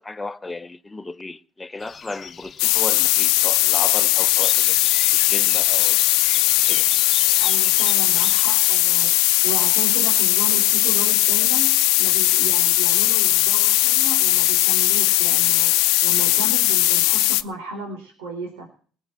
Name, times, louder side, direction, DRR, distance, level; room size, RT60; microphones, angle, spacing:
voice 1, 0.0-6.0 6.6-6.9, left 3 dB, 15° left, 1.1 m, -35 dB
sound 1, 1.8-8.4, left 7 dB, 45° left, 1.0 m, -37 dB
sound 2, 2.6-17.4, left 19 dB, 80° left, 0.7 m, -18 dB
voice 2, 7.4-18.7, right 2 dB, 90° right, 4.1 m, -34 dB
19.5 x 7.2 x 7.6 m
supercardioid pair, 75°, 0 cm